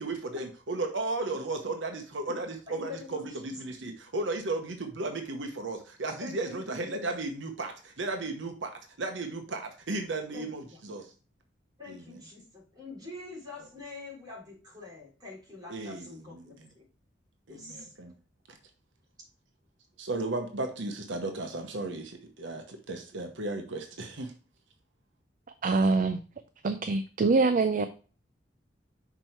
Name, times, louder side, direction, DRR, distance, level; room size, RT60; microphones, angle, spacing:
voice 1, 0.0-8.7 9.0-11.1 11.9-12.2 15.7-16.7 17.5-18.1 18.5-18.6 20.0-24.3, right 2 dB, 85° right, 5 dB, 1.0 m, -35 dB
voice 2, 2.7-3.6 6.2-6.9 10.3-10.8 11.8-16.8 17.5-17.9, left 3 dB, 20° right, -4 dB, 3.6 m, -45 dB
voice 3, 25.6-26.2 26.6-27.9, right 3 dB, 45° right, 9 dB, 0.4 m, -24 dB
6.1 x 4.5 x 4.4 m, 0.37 s
head